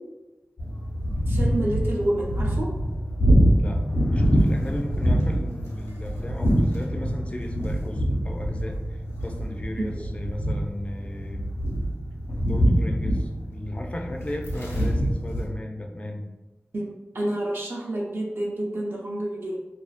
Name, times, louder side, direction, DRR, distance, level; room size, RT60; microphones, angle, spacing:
sound 1, 0.6-15.4, equal, 85° left, 0.8 m, -25 dB
voice 1, 1.3-2.7 10.0-10.1 16.7-16.9 17.1-19.6, right 1 dB, 55° right, -2 dB, 0.5 m, -28 dB
voice 2, 4.1-11.4 12.4-16.2, left 1 dB, 25° left, 2 dB, 0.4 m, -35 dB
2.4 x 2.3 x 2.4 m, 1.1 s
wide cardioid pair, 60°, 5 cm